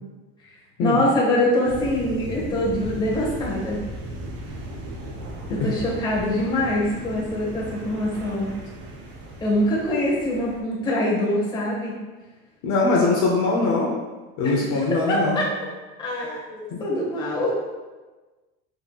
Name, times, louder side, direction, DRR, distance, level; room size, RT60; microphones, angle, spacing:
voice 1, 0.8-3.8 5.5-8.5 9.4-11.9 14.4-14.5 15.1-15.5 16.0-17.6, left 1 dB, 15° left, -5 dB, 0.9 m, -24 dB
sound 1, 1.6-10.6, right 1 dB, 40° right, 0.7 m, -36 dB
voice 2, 12.6-13.9 14.4-15.4 16.7-16.8, left 3 dB, 50° left, -2 dB, 0.7 m, -22 dB
4.4 x 3.8 x 2.3 m, 1.2 s
cardioid pair, 160°, 30 cm